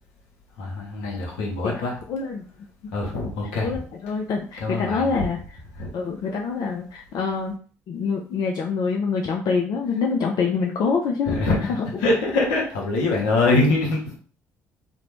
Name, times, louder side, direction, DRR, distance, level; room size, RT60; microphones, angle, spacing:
voice 1, 0.6-2.0 2.9-3.8 4.6-5.0 5.7-5.9 11.3-11.6 12.0-14.2, left 2 dB, 75° left, -1 dB, 0.8 m, -23 dB
voice 2, 2.1-2.4 2.8-2.9 3.6-5.4 5.9-7.6 7.9-11.5 11.8-11.9, left 5 dB, 55° left, 1 dB, 0.4 m, -25 dB
2.5 x 2.0 x 3.0 m, 0.42 s
hypercardioid pair, 50°, 8 cm